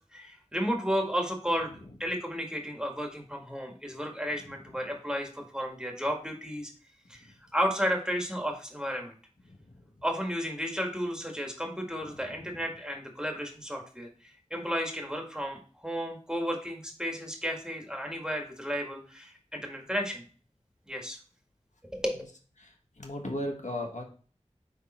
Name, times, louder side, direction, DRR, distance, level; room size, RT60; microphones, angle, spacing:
voice 1, 0.1-6.7 7.1-7.3 7.5-9.1 10.0-20.2 20.9-21.2 21.9-22.3, equal, 5° right, 1 dB, 1.9 m, -33 dB
voice 2, 9.4-9.9 12.0-12.5 22.6-24.0, left 1 dB, 80° left, 1 dB, 1.5 m, -37 dB
9.5 x 3.7 x 4.4 m, 0.41 s
wide cardioid pair, 45°, 12 cm